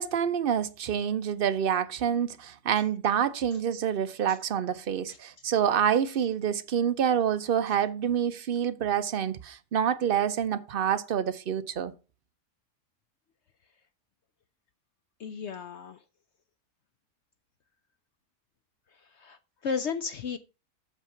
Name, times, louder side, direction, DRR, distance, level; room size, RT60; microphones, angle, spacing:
voice 1, 0.0-11.9, right 8 dB, 65° right, 0.5 m, -27 dB
voice 2, 15.2-16.0 19.0-20.4, left 5 dB, 70° left, 0.6 m, -34 dB
8.2 x 6.1 x 5.6 m
omnidirectional pair, 1.7 m